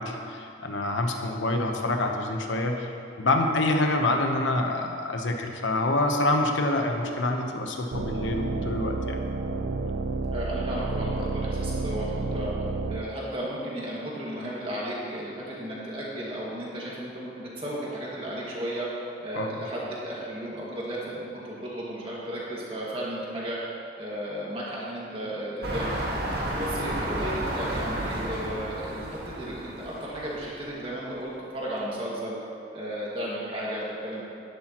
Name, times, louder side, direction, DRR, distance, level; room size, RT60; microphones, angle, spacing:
voice 1, 0.0-2.9 3.2-9.2 19.3-19.5, left 2 dB, 90° left, 3 dB, 1.0 m, -26 dB
sound 1, 7.9-13.0, right 3 dB, 80° right, 0.5 m, -30 dB
voice 2, 10.3-12.5 12.9-23.6 24.0-26.1 26.6-32.4 32.7-34.2, right 1 dB, 30° right, -6 dB, 2.1 m, -34 dB
sound 2, 25.6-30.6 31.2-31.3, right 1 dB, 55° right, 1.5 m, -32 dB
11.5 x 10.0 x 3.1 m, 2.5 s
head